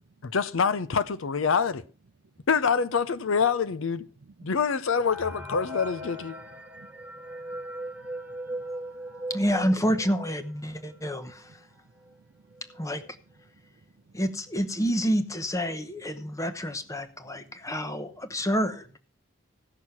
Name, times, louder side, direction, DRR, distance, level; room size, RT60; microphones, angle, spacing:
voice 1, 0.2-1.8 2.5-4.1 4.4-6.4, left 5 dB, 75° left, 0.6 m, -26 dB
voice 2, 4.2-4.5 6.7-9.3 9.8-9.9 10.6-11.0 11.6-11.7 12.1-12.6 13.7-14.2 17.2-17.7, right 3 dB, 55° right, 0.5 m, -56 dB
sound 1, 5.0-10.4 10.9-11.0 11.2-11.3 12.1-12.2 12.5-12.9, equal, 10° right, 1.5 m, -38 dB
voice 3, 9.3-11.6 12.8-13.0 14.1-18.9, equal, 15° left, 0.9 m, -28 dB
15.0 x 6.3 x 5.7 m
head